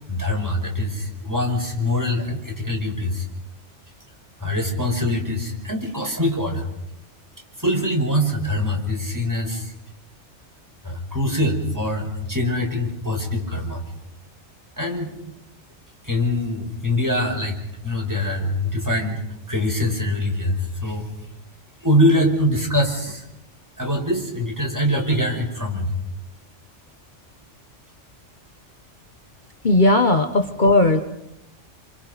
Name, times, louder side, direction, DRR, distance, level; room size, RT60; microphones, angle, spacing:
voice 1, 0.1-3.3 4.4-6.7 7.6-9.7 10.8-13.8 14.8-15.1 16.0-17.6 17.8-19.2 19.5-21.1 21.8-23.2 23.8-25.9, left 1 dB, 15° right, 1 dB, 5.3 m, -23 dB
voice 2, 29.6-31.0, left 2 dB, 40° left, 5 dB, 1.5 m, -16 dB
29.0 x 27.0 x 5.4 m, 0.82 s
omnidirectional pair, 1.2 m